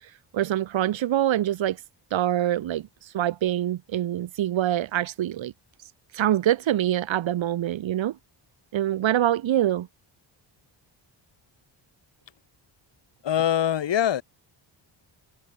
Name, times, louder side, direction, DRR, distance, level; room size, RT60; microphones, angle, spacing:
voice 1, 0.3-1.8 2.1-2.9 3.1-5.5 6.1-8.2 8.7-9.9, right 12 dB, 85° right, 2.1 m, -24 dB
voice 2, 13.2-14.2, left 10 dB, 70° left, 5.0 m, -23 dB
wide cardioid pair, 165°, 45 cm